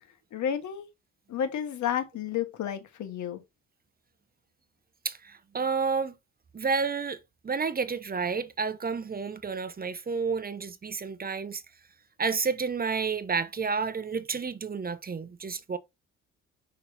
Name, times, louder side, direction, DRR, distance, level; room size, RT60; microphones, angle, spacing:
voice 1, 0.3-0.8 1.3-3.4, left 9 dB, 70° left, 1.7 m, -31 dB
voice 2, 5.0-6.2 6.5-11.6 12.2-15.8, right 5 dB, 30° right, 0.9 m, -30 dB
6.2 x 5.7 x 2.8 m
cardioid pair, 90°, 30 cm